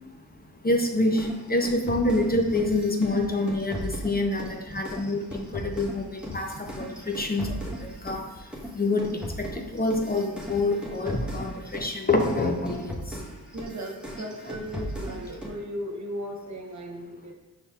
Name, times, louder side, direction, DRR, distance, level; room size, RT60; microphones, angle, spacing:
voice 1, 0.6-7.5 7.8-8.3 8.8-13.0, left 2 dB, 25° left, 3 dB, 0.6 m, -26 dB
sound 1, 1.2-8.2 8.5-15.6, equal, 5° right, 1.1 m, -37 dB
voice 2, 4.6-5.1 6.7-6.8 7.9-8.0 13.5-17.3, equal, 50° right, 1 dB, 0.9 m, -37 dB
5.4 x 3.3 x 2.4 m, 1.1 s
cardioid pair, 45°, 36 cm